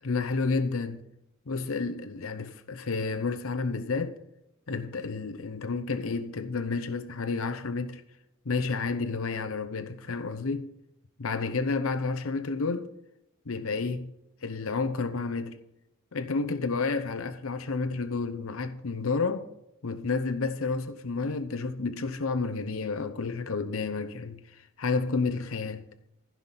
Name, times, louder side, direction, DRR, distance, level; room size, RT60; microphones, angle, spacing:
voice 1, 0.0-1.0 1.5-4.2 4.7-8.0 8.5-10.7 11.2-12.9 13.5-14.1 14.4-15.6 16.1-19.5 19.8-25.9, left 4 dB, 80° left, 0.8 m, -30 dB
15.5 x 5.7 x 5.7 m
head